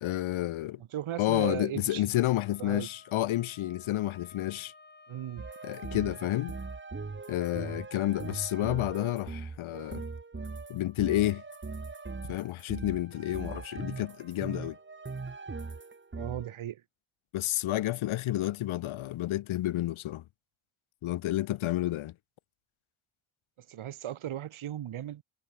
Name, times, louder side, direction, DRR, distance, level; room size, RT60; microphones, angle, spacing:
voice 1, 0.0-0.8 1.2-4.7 5.6-6.6 7.3-10.0 10.7-11.4 12.2-14.8 17.3-20.2 21.0-22.1, left 15 dB, 70° left, 0.8 m, -30 dB
voice 2, 0.8-2.1 2.6-2.9 5.1-5.4 5.9-6.1 16.2-16.8 23.6-25.2, right 11 dB, 70° right, 1.8 m, -37 dB
Wind instrument woodwind instrument, 2.1-6.8, left 3 dB, 20° left, 2.2 m, -56 dB
sound 1, 5.4-16.5, right 4 dB, 25° right, 1.8 m, -40 dB
cardioid pair, 85°, 50 cm